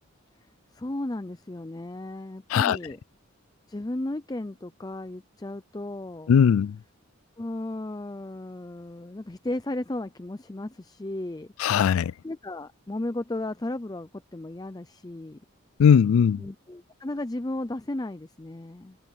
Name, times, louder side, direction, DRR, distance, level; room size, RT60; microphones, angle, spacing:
voice 1, 0.7-3.0 3.7-6.3 7.4-11.5 12.2-15.4 16.4-19.0, left 1 dB, 20° left, 0.5 m, -34 dB
voice 2, 6.3-6.8 11.6-12.1 15.8-16.5, left 7 dB, 75° left, 0.3 m, -19 dB
head